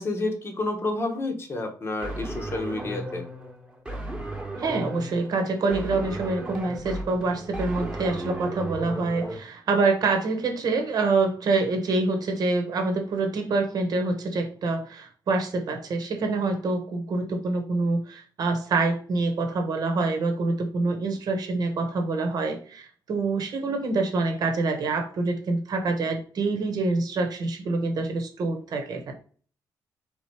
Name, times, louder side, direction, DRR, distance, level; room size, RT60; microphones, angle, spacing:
voice 1, 0.0-3.2, left 2 dB, 35° left, 4 dB, 1.0 m, -30 dB
sound 1, 2.0-9.4, right 1 dB, 10° right, 1.2 m, -35 dB
voice 2, 4.6-29.1, right 3 dB, 55° right, 5 dB, 1.0 m, -26 dB
3.9 x 2.9 x 4.5 m, 0.42 s
cardioid pair, 130°, 8 cm